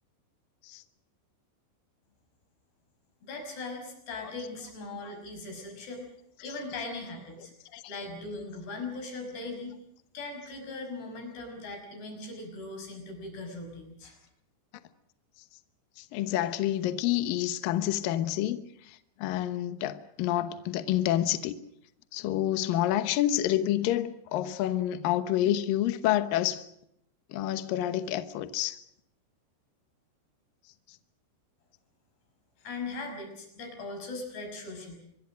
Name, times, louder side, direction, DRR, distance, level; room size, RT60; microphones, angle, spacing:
voice 1, 3.2-6.1 6.4-7.5 7.9-9.8 10.1-14.2 32.6-35.0, left 3 dB, 55° left, 7.8 m, -39 dB
voice 2, 16.0-21.6 22.1-26.7 27.3-28.8, left 12 dB, 85° left, 2.0 m, -28 dB
25.5 x 23.0 x 6.3 m
omnidirectional pair, 5.8 m